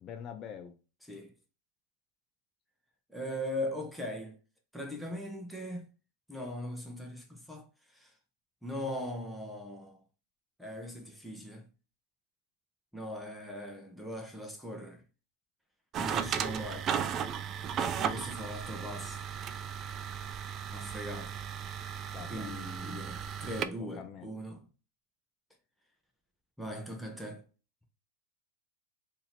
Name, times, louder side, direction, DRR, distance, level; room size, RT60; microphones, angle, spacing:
voice 1, 0.0-0.7 22.1-22.5 23.8-24.3, left 8 dB, 35° left, 0.5 m, -45 dB
voice 2, 3.1-4.4 4.7-5.8 6.3-7.7 7.9-8.1 8.6-10.0 10.6-11.7 12.9-15.0 16.0-16.9 18.0-19.2 20.7-21.3 22.2-24.7 26.6-27.4, equal, ahead, 0.7 m, -40 dB
sound 1, 15.9-23.7, right 8 dB, 35° right, 0.3 m, -35 dB
2.8 x 2.7 x 4.2 m
supercardioid pair, 125°, 0 cm